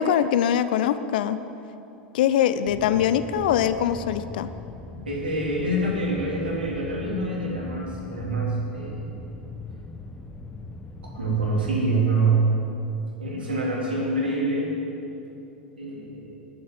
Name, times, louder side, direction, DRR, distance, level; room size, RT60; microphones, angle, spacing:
voice 1, 0.0-1.4 2.1-4.5, left 9 dB, 65° left, 13 dB, 0.5 m, -22 dB
sound 1, 2.7-11.7, left 2 dB, 20° left, 1.0 m, -40 dB
voice 2, 5.1-9.1 11.0-12.5 13.2-14.7 15.8-16.4, right 2 dB, 80° right, -3 dB, 3.5 m, -26 dB
11.0 x 8.6 x 9.2 m, 2.8 s
figure-of-eight pair, 85°, 5 cm